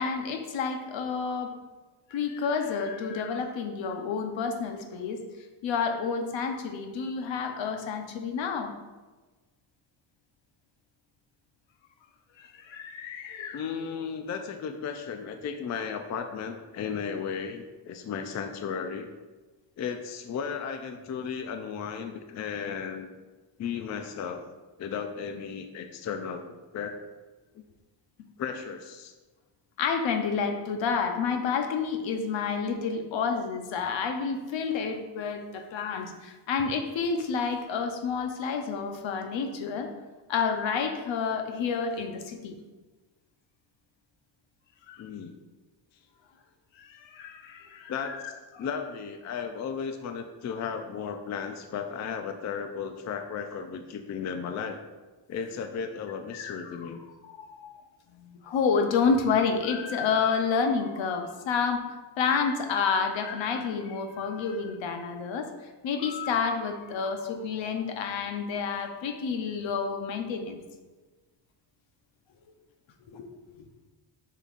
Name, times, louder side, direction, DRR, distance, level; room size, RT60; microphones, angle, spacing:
voice 1, 0.0-1.5 2.1-5.2 5.6-8.7 12.4-13.7 29.8-39.9 40.3-42.6 44.9-45.0 46.8-48.3 48.5-48.7 56.3-56.9 57.2-57.8 58.2-61.8 62.2-70.6 73.0-73.3 73.6-73.7, left 5 dB, 75° left, 5 dB, 0.9 m, -29 dB
voice 2, 13.5-19.1 19.8-23.1 23.6-24.5 24.8-27.0 27.6-27.7 28.4-29.1 45.0-45.3 47.9-48.2 48.6-54.8 55.3-57.0, left 6 dB, 40° left, 7 dB, 0.4 m, -35 dB
7.0 x 5.6 x 2.5 m, 1.2 s
cardioid pair, 140°, 46 cm